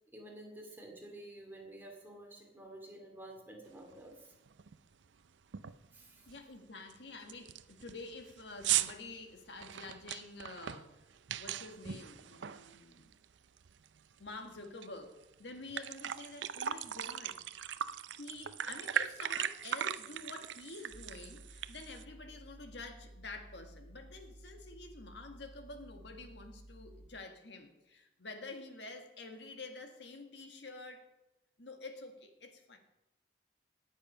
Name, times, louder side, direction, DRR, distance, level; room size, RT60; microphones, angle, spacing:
voice 1, 0.1-4.3 5.9-6.3, right 1 dB, 10° right, 1 dB, 2.5 m, -50 dB
sound 1, 3.9-4.0 4.5-4.8 5.0-5.1 5.5-5.9 6.3-6.4 6.9-7.0 7.3-13.2 13.6-14.9 15.2-15.3 15.6-22.0, right 10 dB, 80° right, 0.5 m, -38 dB
voice 2, 6.3-11.0 11.4-13.1 14.2-17.7 18.1-31.1 31.6-32.8, left 3 dB, 70° left, 5 dB, 1.7 m, -48 dB
sound 2, 20.9-27.1, right 1 dB, 35° right, 4.3 m, -54 dB
18.5 x 7.4 x 5.5 m, 0.93 s
head